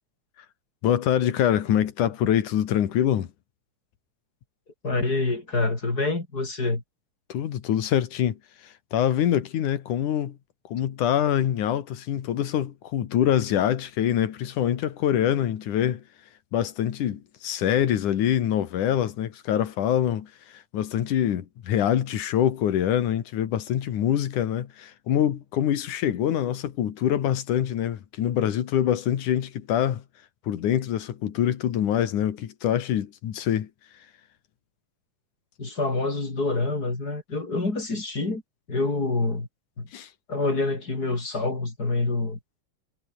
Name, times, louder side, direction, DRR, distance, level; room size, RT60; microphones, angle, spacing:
voice 1, 0.8-3.3 7.3-8.4 8.6-10.4 10.7-16.0 16.5-30.0 30.5-33.7 39.9-40.1, left 10 dB, 90° left, 3.2 m, -25 dB
voice 2, 4.8-6.8 35.6-38.4 38.7-39.5 39.8-39.9 40.3-42.4, left 3 dB, 30° left, 4.8 m, -26 dB
omnidirectional pair, 3.5 m